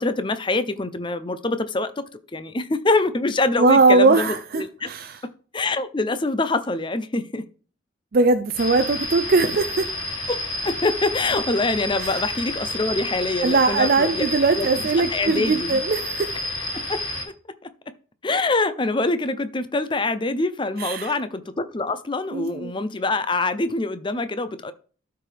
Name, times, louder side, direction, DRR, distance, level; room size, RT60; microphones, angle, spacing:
voice 1, 0.0-2.0 2.3-4.9 5.2-7.5 10.3-10.4 10.6-14.7 15.1-15.8 16.7-17.0 17.6-17.7 18.2-24.7, left 2 dB, 25° left, 0.5 m, -25 dB
voice 2, 3.6-5.2 8.1-9.9 12.0-12.2 13.4-16.4 20.8-21.1 22.3-22.7, right 3 dB, 45° right, 0.4 m, -20 dB
sound 1, 8.6-17.2, left 1 dB, 80° left, 2.5 m, -30 dB
12.5 x 4.7 x 3.4 m
head